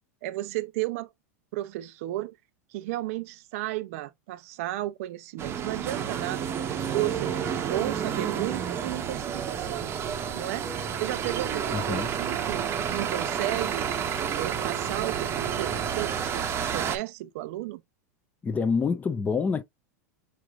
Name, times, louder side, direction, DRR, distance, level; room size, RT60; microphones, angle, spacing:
voice 1, 0.2-1.1 1.5-2.4 2.7-9.9 10.3-10.7 11.0-14.1 14.3-17.8, right 16 dB, 60° right, 0.4 m, -34 dB
sound 1, 5.4-17.0, right 8 dB, 30° right, 0.8 m, -30 dB
voice 2, 11.7-12.1 18.4-19.6, left 5 dB, 20° left, 0.6 m, -26 dB
4.9 x 3.1 x 2.3 m
hypercardioid pair, 110°, 9 cm